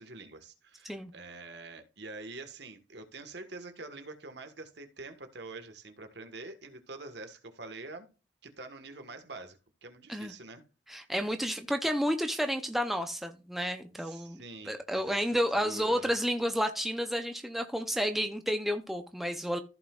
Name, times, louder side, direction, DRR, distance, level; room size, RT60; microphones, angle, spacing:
voice 1, 0.0-8.1 8.4-10.6 14.0-15.2 15.5-16.1, right 3 dB, 60° right, 1.5 m, -45 dB
voice 2, 10.9-19.6, equal, ahead, 0.6 m, -31 dB
14.5 x 5.7 x 2.4 m
head